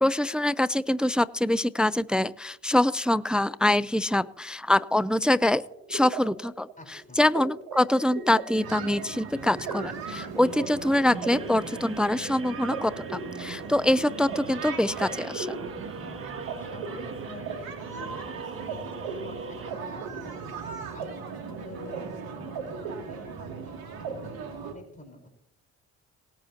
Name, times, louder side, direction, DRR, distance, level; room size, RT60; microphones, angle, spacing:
voice 1, 0.0-5.6 5.9-6.7 7.2-15.6, left 1 dB, ahead, 17 dB, 0.4 m, -24 dB
sound 1, 5.4-16.5 16.8-18.3 18.7-18.8 19.0-21.1 21.3-22.0 22.2-23.7 24.0-24.1, right 6 dB, 90° right, 3.1 m, -39 dB
voice 2, 6.8-7.2 15.7-20.2 20.9-25.3, left 1 dB, 20° left, 2 dB, 4.3 m, -48 dB
sound 2, 8.5-24.7, right 5 dB, 70° right, 2.7 m, -39 dB
sound 3, 10.4-19.7, right 4 dB, 35° right, 1.5 m, -42 dB
19.0 x 9.0 x 2.9 m, 0.76 s
hypercardioid pair, 50°, 38 cm